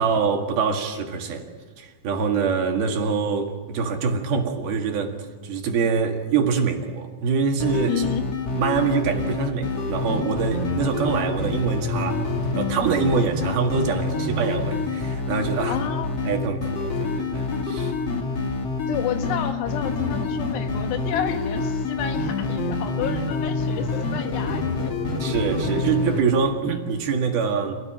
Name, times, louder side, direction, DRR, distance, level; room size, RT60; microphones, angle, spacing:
voice 1, 0.0-1.5 1.8-5.2 5.4-8.1 8.5-12.3 12.6-15.8 16.2-17.9 25.2-27.8, right 5 dB, 65° right, 3.7 m, -24 dB
sound 1, 7.6-26.2, left 3 dB, 45° left, 2.7 m, -27 dB
voice 2, 7.9-8.3 15.7-16.2 18.9-25.0, left 9 dB, 75° left, 3.4 m, -30 dB
28.0 x 18.0 x 9.0 m
omnidirectional pair, 5.0 m